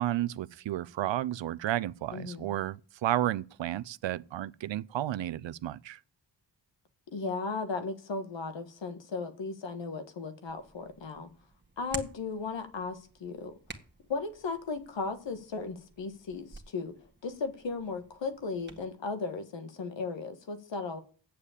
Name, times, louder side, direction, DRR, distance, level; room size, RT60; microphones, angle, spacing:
voice 1, 0.0-6.0, right 13 dB, 85° right, 0.5 m, -32 dB
voice 2, 2.1-2.5 7.1-11.3 11.8-13.5 14.1-16.9 17.2-21.0, left 4 dB, 80° left, 1.6 m, -36 dB
Hands, 10.4-18.9, right 2 dB, 25° right, 1.7 m, -49 dB
8.5 x 7.4 x 8.4 m
cardioid pair, 65°, 44 cm